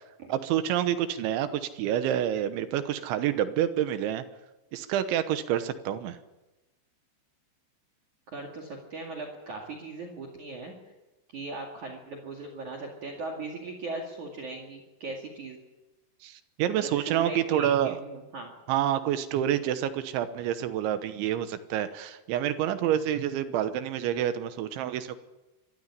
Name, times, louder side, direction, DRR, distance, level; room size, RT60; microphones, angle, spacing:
voice 1, 0.3-4.2 4.7-6.2 16.2-18.0 18.7-25.2, right 11 dB, 75° right, 11 dB, 3.3 m, -28 dB
voice 2, 8.3-10.7 11.3-15.6 16.8-18.5, right 3 dB, 45° right, 3 dB, 3.1 m, -38 dB
23.5 x 14.0 x 9.9 m, 1.1 s
omnidirectional pair, 5.6 m